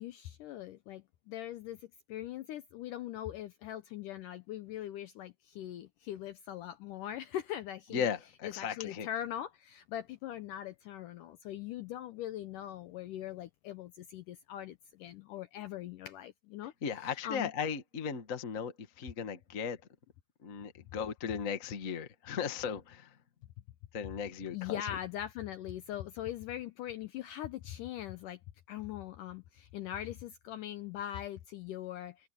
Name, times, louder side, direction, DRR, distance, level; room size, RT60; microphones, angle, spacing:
voice 1, 0.0-8.1 8.4-16.7 17.0-17.5 24.5-28.4 28.7-32.3, left 12 dB, 75° left, 1.9 m, -41 dB
voice 2, 7.9-9.1 16.8-19.8 20.4-23.2 23.9-24.9, left 6 dB, 55° left, 0.9 m, -36 dB
omnidirectional pair, 4.5 m